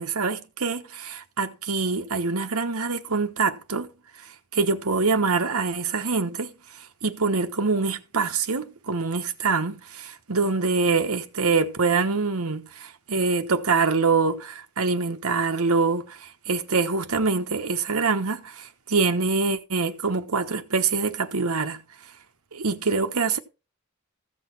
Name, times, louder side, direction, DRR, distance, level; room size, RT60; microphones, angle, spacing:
voice 1, 0.0-3.9 4.5-6.5 7.0-21.8 22.5-23.4, right 4 dB, 85° right, 1.1 m, -25 dB
14.5 x 6.4 x 4.6 m
head